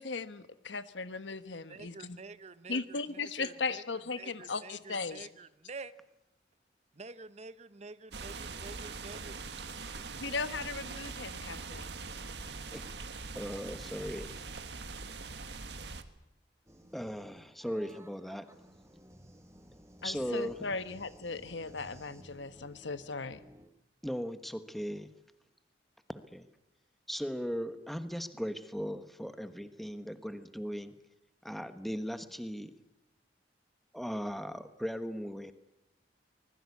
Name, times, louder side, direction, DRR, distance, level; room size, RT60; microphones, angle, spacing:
voice 1, 0.0-2.2 2.7-5.3 10.2-12.0 20.0-23.4, left 4 dB, 85° left, 12 dB, 1.3 m, -37 dB
voice 2, 1.7-3.8 4.2-5.9 6.9-9.3, right 3 dB, 35° right, 14 dB, 0.9 m, -48 dB
sound 1, 8.1-16.0, right 4 dB, 65° right, 1.7 m, -42 dB
voice 3, 12.7-13.0 13.3-14.3 16.9-18.6 20.0-20.7 24.0-25.1 26.3-26.5 27.1-30.9 31.4-32.7 33.9-35.5, equal, ahead, 10 dB, 1.3 m, -38 dB
sound 2, 16.7-23.7, equal, 15° right, 1.7 m, -56 dB
24.0 x 20.5 x 8.4 m, 0.89 s
head